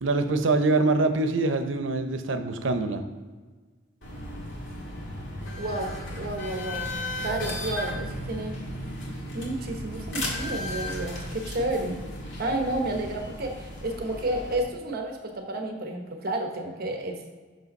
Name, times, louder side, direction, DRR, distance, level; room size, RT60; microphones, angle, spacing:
voice 1, 0.0-3.0, right 3 dB, 85° right, 8 dB, 0.7 m, -24 dB
sound 1, 4.0-14.6, left 1 dB, 75° left, 1.8 m, -35 dB
voice 2, 5.6-6.9 7.2-8.6 9.3-12.0 12.4-17.2, right 1 dB, 55° right, 3 dB, 0.9 m, -31 dB
5.9 x 5.4 x 5.3 m, 1.4 s
head